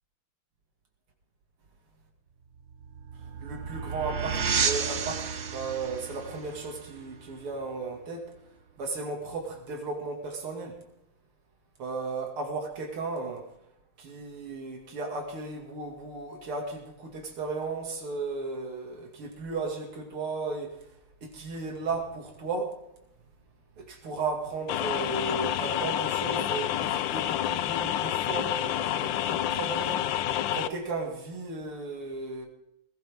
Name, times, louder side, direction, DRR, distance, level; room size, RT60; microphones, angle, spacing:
sound 1, 2.6-8.0, right 6 dB, 45° right, 1.0 m, -32 dB
voice 1, 3.4-8.3 8.8-10.8 11.8-13.5 14.0-20.7 21.2-22.7 23.8-30.1 30.5-32.5, right 3 dB, 80° right, 3.3 m, -35 dB
sound 2, 24.7-30.7, left 11 dB, 70° left, 1.3 m, -28 dB
19.5 x 17.0 x 3.7 m
omnidirectional pair, 2.3 m